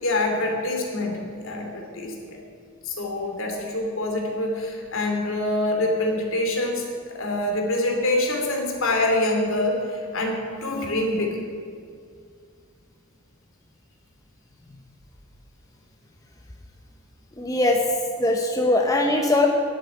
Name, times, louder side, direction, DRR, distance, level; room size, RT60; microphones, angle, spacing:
voice 1, 0.0-2.4 2.8-11.4, left 1 dB, 60° left, 1 dB, 2.8 m, -25 dB
voice 2, 17.4-17.8 18.2-19.5, left 2 dB, 15° left, 1 dB, 0.9 m, -20 dB
11.0 x 9.1 x 9.9 m, 2.3 s
head